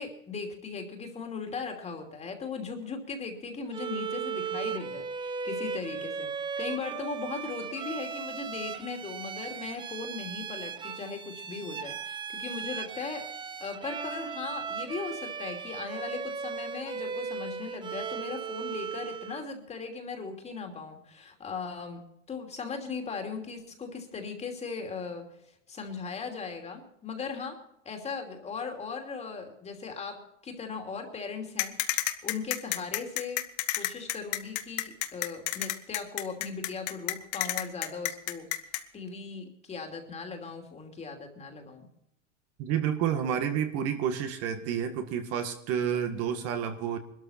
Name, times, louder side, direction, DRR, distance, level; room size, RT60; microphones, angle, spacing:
voice 1, 0.0-13.3 13.6-22.0 22.3-25.3 25.7-27.6 27.8-33.4 33.8-38.5 38.9-41.9, left 5 dB, 20° left, 4 dB, 2.8 m, -38 dB
Bowed string instrument, 3.7-19.5, right 6 dB, 15° right, 0.7 m, -37 dB
sound 1, 31.6-38.8, left 15 dB, 60° left, 1.6 m, -30 dB
voice 2, 42.6-47.0, right 8 dB, 40° right, 7 dB, 1.8 m, -30 dB
21.0 x 13.0 x 4.4 m, 0.75 s
supercardioid pair, 145°, 37 cm